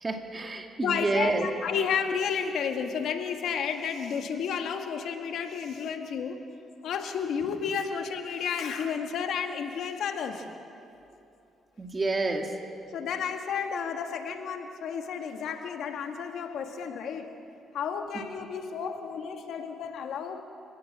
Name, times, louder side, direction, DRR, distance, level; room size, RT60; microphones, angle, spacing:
voice 1, 0.0-1.5 11.8-12.5, right 3 dB, 25° right, 3 dB, 2.3 m, -28 dB
voice 2, 0.8-6.4 6.8-10.5 12.9-17.4 17.7-20.4, left 6 dB, 75° left, 5 dB, 1.8 m, -32 dB
25.0 x 17.0 x 7.5 m, 2.7 s
cardioid pair, 90°, 0 cm